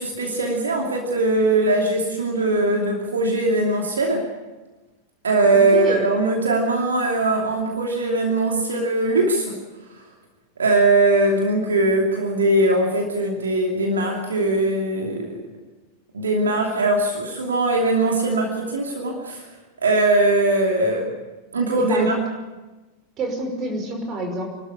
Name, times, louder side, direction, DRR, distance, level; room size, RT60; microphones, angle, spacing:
voice 1, 0.0-4.2 5.2-9.6 10.6-15.4 16.1-19.5 19.8-21.1 21.5-22.2, right 2 dB, 70° right, 1 dB, 2.7 m, -20 dB
voice 2, 5.5-6.0 21.8-22.2 23.2-24.5, right 2 dB, 30° right, 3 dB, 5.6 m, -27 dB
26.5 x 12.5 x 8.6 m, 1.2 s
figure-of-eight pair, 90°, 0 cm